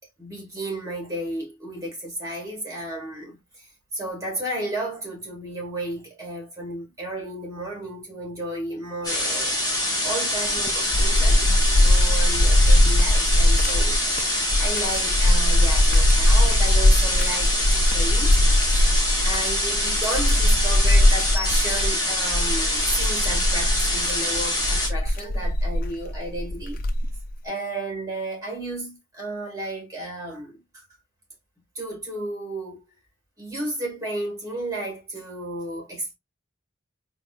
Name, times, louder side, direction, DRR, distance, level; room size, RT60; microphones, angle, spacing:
voice 1, 0.2-9.6 10.0-14.3 14.6-18.4 18.7-18.9 19.2-26.8 27.4-30.8 31.7-32.8 33.4-36.1, right 1 dB, 15° right, 1.6 m, -33 dB
sound 1, 9.0-24.9, left 1 dB, 20° left, 1.0 m, -25 dB
sound 2, 10.5-27.3, left 1 dB, 45° left, 0.4 m, -20 dB
4.1 x 2.6 x 2.2 m
head